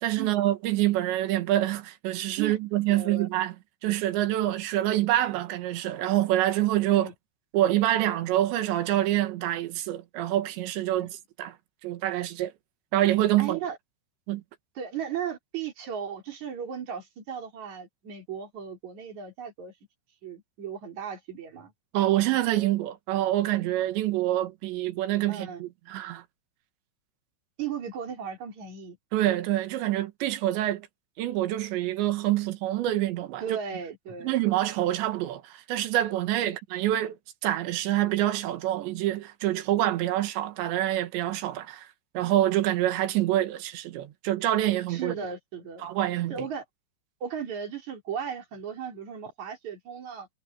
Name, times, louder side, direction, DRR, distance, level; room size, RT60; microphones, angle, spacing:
voice 1, 0.0-3.6 3.8-7.1 7.5-11.6 11.8-12.5 12.9-13.6 14.3-14.4 21.9-26.2 29.1-30.9 31.2-33.6 34.2-37.2 37.4-41.9 42.2-45.2 45.8-46.3, right 14 dB, 75° right, 3.7 m, -26 dB
voice 2, 2.9-3.3 6.9-7.1 10.9-11.1 13.4-13.8 14.7-19.7 20.2-21.7 25.3-25.6 27.6-29.0 33.4-34.3 36.4-36.5 44.9-45.9 46.3-46.6 47.2-50.3, right 7 dB, 40° right, 4.9 m, -36 dB
omnidirectional pair, 5.3 m